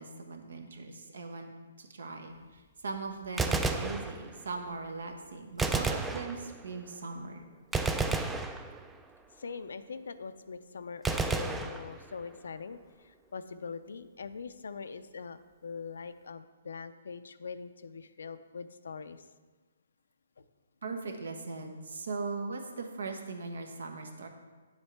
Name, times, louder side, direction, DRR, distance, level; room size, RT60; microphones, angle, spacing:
voice 1, 0.0-1.5 1.8-7.5 20.8-24.3, right 3 dB, 75° right, 4 dB, 1.2 m, -40 dB
Gunshot gunfire, 3.2-4.6 5.6-6.8 7.7-9.2 11.0-12.4, right 3 dB, 5° right, 0.4 m, -32 dB
voice 2, 9.4-19.2 20.4-20.5, left 5 dB, 75° left, 11 dB, 0.5 m, -43 dB
9.3 x 7.3 x 3.3 m, 1.3 s
hypercardioid pair, 150°, 0 cm